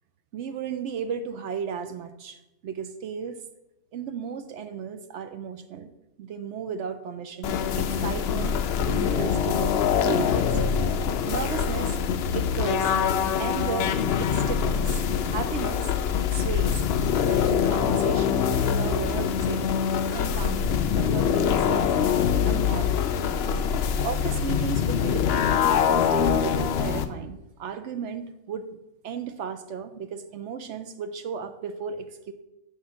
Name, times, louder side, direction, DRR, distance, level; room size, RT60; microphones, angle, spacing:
voice 1, 0.3-3.4 3.9-5.9 6.2-8.6 8.9-10.6 11.3-12.0 12.3-12.9 13.4-15.0 15.3-16.8 17.1-19.7 20.1-21.9 22.4-22.9 24.0-25.5 25.9-28.7 29.0-32.3, right 6 dB, 65° right, 9 dB, 0.7 m, -34 dB
sound 1, 7.4-27.1, left 7 dB, 70° left, 0.6 m, -24 dB
8.8 x 3.7 x 6.3 m, 0.94 s
omnidirectional pair, 1.6 m